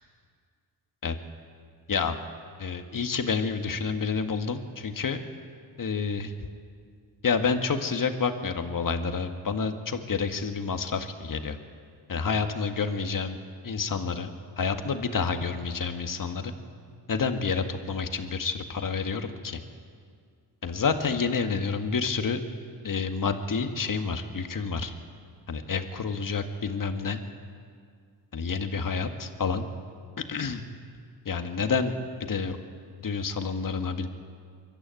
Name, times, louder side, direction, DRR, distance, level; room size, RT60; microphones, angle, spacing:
voice 1, 2.6-5.2 5.8-6.3 7.2-11.6 12.1-13.4 13.6-14.3 14.6-16.5 17.1-19.6 20.6-22.4 22.8-24.9 25.5-27.2 28.3-29.7 30.2-30.6 31.3-31.9 32.3-32.6 33.0-34.1, left 5 dB, 45° left, 6 dB, 2.0 m, -29 dB
23.5 x 13.0 x 9.3 m, 2.2 s
supercardioid pair, 55°, 44 cm